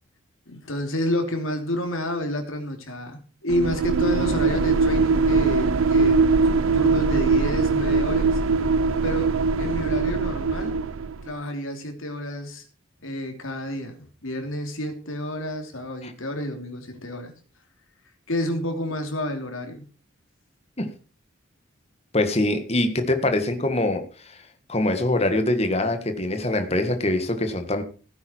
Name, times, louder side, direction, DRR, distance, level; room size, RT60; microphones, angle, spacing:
voice 1, 0.5-8.4 9.0-10.9 11.2-12.6 13.0-17.3 18.3-19.8, left 1 dB, 80° left, 5 dB, 3.0 m, -30 dB
sound 1, 3.5-11.3, right 4 dB, 80° right, 0.5 m, -21 dB
voice 2, 22.1-24.4 24.7-27.8, left 1 dB, 30° left, 7 dB, 1.6 m, -24 dB
16.0 x 9.4 x 4.5 m, 0.37 s
head